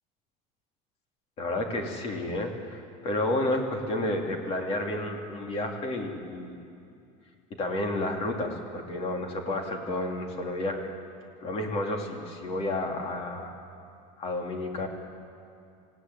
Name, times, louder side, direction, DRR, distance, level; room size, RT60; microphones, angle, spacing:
voice 1, 1.4-6.6 7.6-10.9 11.4-13.5 14.2-14.9, left 1 dB, 35° left, 2 dB, 2.8 m, -31 dB
27.0 x 17.0 x 9.7 m, 2.5 s
cardioid pair, 175°, 18 cm